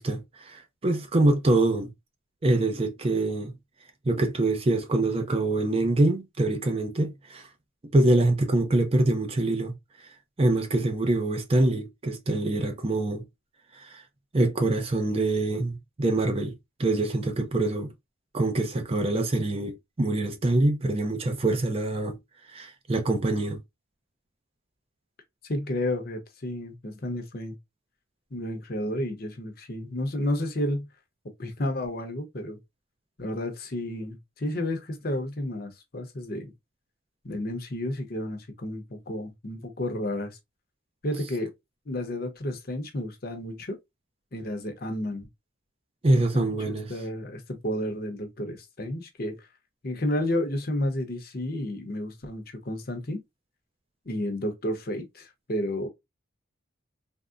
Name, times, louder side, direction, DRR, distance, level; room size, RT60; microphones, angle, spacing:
voice 1, 0.0-1.9 2.4-3.5 4.0-7.5 7.9-9.8 10.4-13.2 13.7-14.0 14.3-16.5 16.8-17.9 18.3-22.2 22.5-23.6 46.0-46.9, right 2 dB, 30° right, 0.4 m, -25 dB
voice 2, 25.4-27.5 28.3-30.9 31.4-32.6 33.2-36.5 37.2-40.4 41.0-41.5 41.9-43.8 44.3-45.3 46.1-49.4 49.8-53.2 54.1-55.9, left 1 dB, 50° left, 0.7 m, -31 dB
3.5 x 2.0 x 2.4 m
head